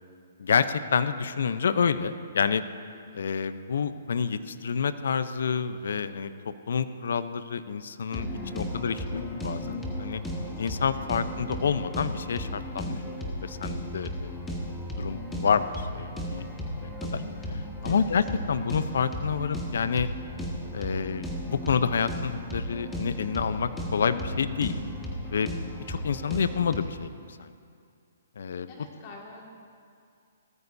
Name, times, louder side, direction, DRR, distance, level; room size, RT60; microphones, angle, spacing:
voice 1, 0.4-2.6 3.1-8.2 8.6-10.2 10.6-14.5 15.0-16.4 16.8-17.2 17.5-20.1 20.7-24.7 25.3-25.5 25.9-27.1 27.4-27.5 28.4-28.7, left 6 dB, 70° left, 12 dB, 0.7 m, -28 dB
voice 2, 8.1-8.7 10.6-11.1 17.8-18.1 28.7-29.4, left 3 dB, 40° left, -1 dB, 2.0 m, -44 dB
sound 1, 8.1-26.8, equal, 10° left, 1.7 m, -35 dB
18.5 x 14.0 x 2.7 m, 2.3 s
hypercardioid pair, 145°, 0 cm